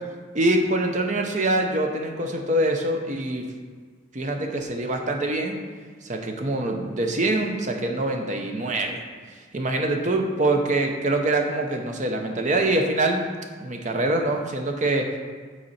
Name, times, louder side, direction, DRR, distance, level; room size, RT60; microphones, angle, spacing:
voice 1, 0.3-3.4 4.1-5.6 6.0-9.0 9.3-13.2 13.6-15.1, right 2 dB, 35° right, 3 dB, 0.7 m, -24 dB
7.8 x 4.2 x 4.2 m, 1.6 s
head